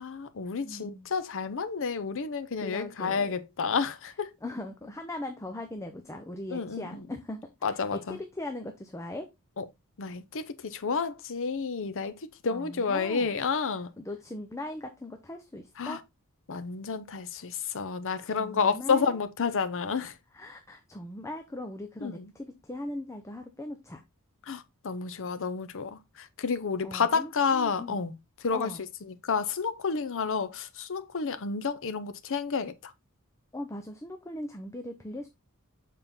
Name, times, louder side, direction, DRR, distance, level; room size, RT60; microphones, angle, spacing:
voice 1, 0.0-4.3 6.5-6.9 7.6-8.2 9.6-9.7 10.0-13.9 15.8-16.0 16.5-20.1 22.0-22.3 24.5-28.1 28.4-28.7 29.2-32.9, left 5 dB, 60° left, 0.7 m, -30 dB
voice 2, 0.6-1.1 2.6-3.3 4.4-9.3 12.5-13.3 14.0-16.0 18.3-19.2 20.3-24.0 26.8-28.0 28.5-28.8 33.5-35.3, left 1 dB, 15° left, 0.6 m, -39 dB
7.1 x 4.2 x 3.6 m
head